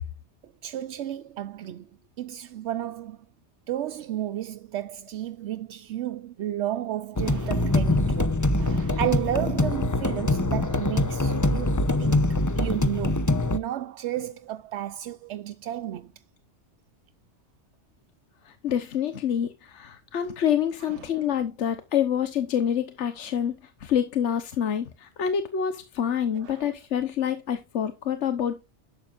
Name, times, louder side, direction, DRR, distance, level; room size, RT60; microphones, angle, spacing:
voice 1, 0.4-1.9 2.2-3.2 3.7-16.1 20.8-21.2 26.3-26.7, right 12 dB, 80° right, 0.9 m, -33 dB
sound 1, 7.2-13.6, left 2 dB, 20° left, 0.7 m, -24 dB
voice 2, 18.6-23.5 23.8-28.7, left 9 dB, 85° left, 1.3 m, -27 dB
11.5 x 7.6 x 2.5 m
omnidirectional pair, 1.2 m